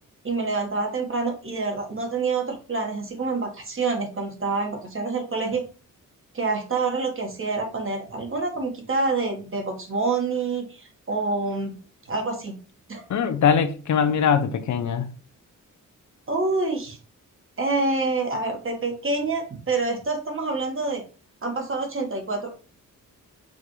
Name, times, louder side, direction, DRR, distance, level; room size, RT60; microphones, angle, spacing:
voice 1, 0.2-5.6 6.3-11.7 12.1-12.5 12.9-13.0 16.3-17.0 17.6-21.0 21.4-22.5, right 3 dB, 40° right, 1.3 m, -27 dB
voice 2, 13.1-15.0, left 7 dB, 60° left, 0.5 m, -21 dB
4.9 x 2.5 x 3.0 m
cardioid pair, 95°, 33 cm